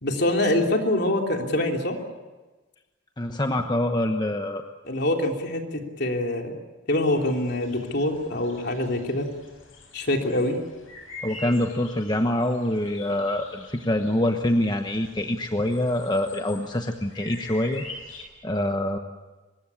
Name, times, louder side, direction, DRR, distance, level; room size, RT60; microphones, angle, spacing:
voice 1, 0.0-2.0 4.9-6.5 6.9-9.3 9.9-10.6, left 1 dB, 55° left, 2 dB, 3.4 m, -25 dB
voice 2, 3.2-4.6 11.2-17.8 18.4-19.0, left 1 dB, 20° left, 5 dB, 1.1 m, -25 dB
sound 1, 7.1-18.2, left 2 dB, 90° left, 7.4 m, -45 dB
24.5 x 21.0 x 8.6 m, 1.2 s
head